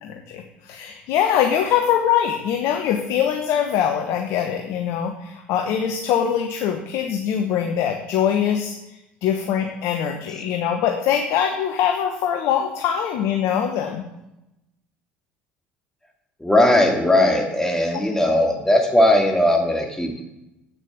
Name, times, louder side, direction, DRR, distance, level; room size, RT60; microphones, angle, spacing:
voice 1, 0.0-8.7 9.2-14.0, left 9 dB, 60° left, 4 dB, 1.1 m, -23 dB
voice 2, 16.4-20.2, left 1 dB, 10° left, 2 dB, 2.3 m, -18 dB
8.8 x 7.3 x 6.4 m, 0.91 s
hypercardioid pair, 65°, 5 cm